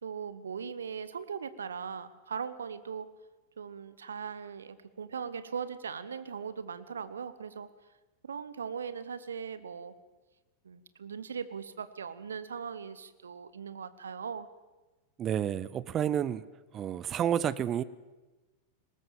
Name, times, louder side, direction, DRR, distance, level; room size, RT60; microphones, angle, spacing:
voice 1, 0.0-3.1 3.6-7.7 8.2-9.9 10.6-14.5, right 6 dB, 70° right, 14 dB, 1.0 m, -39 dB
voice 2, 15.2-16.4 16.7-17.8, right 9 dB, 30° right, 18 dB, 0.6 m, -30 dB
20.0 x 18.0 x 7.4 m, 1.2 s
figure-of-eight pair, 90°, 0 cm